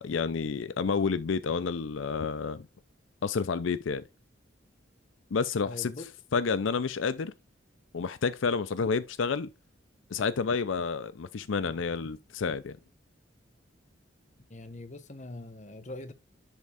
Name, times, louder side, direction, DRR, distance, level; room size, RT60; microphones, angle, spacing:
voice 1, 0.0-2.7 3.2-4.0 5.3-5.9 6.3-7.3 7.9-9.5 10.1-12.8, left 5 dB, 80° left, 0.5 m, -29 dB
voice 2, 5.7-6.1 14.5-16.1, left 2 dB, 40° left, 0.9 m, -42 dB
10.5 x 3.6 x 3.4 m
head